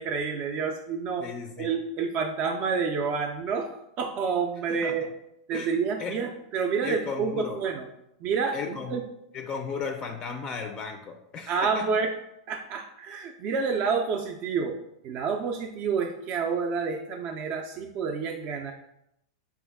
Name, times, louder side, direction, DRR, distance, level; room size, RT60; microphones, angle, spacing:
voice 1, 0.0-1.3 1.6-5.0 5.5-7.8 8.2-9.0 11.5-12.1 12.5-14.8 15.0-18.7, right 5 dB, 45° right, 2 dB, 0.4 m, -29 dB
voice 2, 1.2-1.8 4.7-4.9 5.5-5.7 6.0-6.2 6.8-7.6 8.5-9.0 9.3-11.9, left 5 dB, 30° left, 5 dB, 0.3 m, -35 dB
4.2 x 2.3 x 3.4 m, 0.81 s
hypercardioid pair, 115°, 3 cm